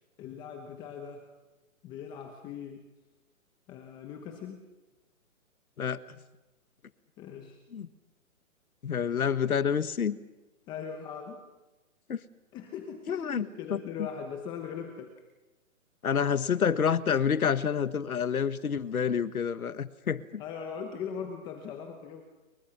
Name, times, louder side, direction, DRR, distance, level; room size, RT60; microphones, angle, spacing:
voice 1, 0.2-1.3 1.8-2.9 3.7-4.7 7.2-7.6 10.7-11.4 12.5-15.1 20.4-22.2, left 7 dB, 10° left, 5 dB, 1.0 m, -40 dB
voice 2, 8.8-10.2 12.1-12.2 13.1-13.8 16.0-20.4, left 7 dB, 80° left, 14 dB, 1.6 m, -28 dB
29.0 x 23.5 x 5.9 m, 1.1 s
hypercardioid pair, 155°, 42 cm